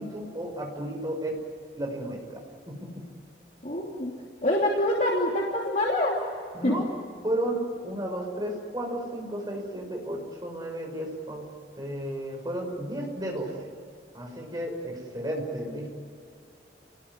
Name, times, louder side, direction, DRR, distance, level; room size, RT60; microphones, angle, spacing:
voice 1, 0.0-1.4 1.8-2.4 2.7-3.0 6.5-6.9 7.2-11.5 11.8-13.7 14.1-15.9, right 1 dB, 20° right, 0 dB, 6.0 m, -33 dB
voice 2, 3.6-4.1 4.4-6.2 6.6-6.7, left 1 dB, 40° left, -3 dB, 3.1 m, -25 dB
29.5 x 20.0 x 9.7 m, 2.4 s
head